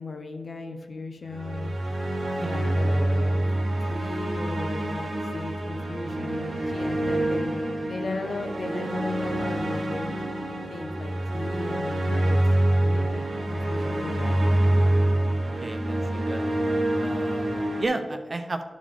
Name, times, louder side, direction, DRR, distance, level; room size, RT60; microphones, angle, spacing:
voice 1, 0.0-1.8 2.4-3.5 3.8-7.5 7.9-10.1 10.7-12.5 12.8-13.2 13.5-14.3, left 3 dB, 75° left, 4 dB, 0.9 m, -36 dB
sound 1, 1.3-17.8, right 1 dB, 80° right, 1.5 m, -26 dB
voice 2, 15.6-16.4 17.0-18.6, right 2 dB, 45° right, 6 dB, 0.9 m, -33 dB
11.5 x 5.2 x 3.7 m, 1.3 s
cardioid pair, 50°, 0 cm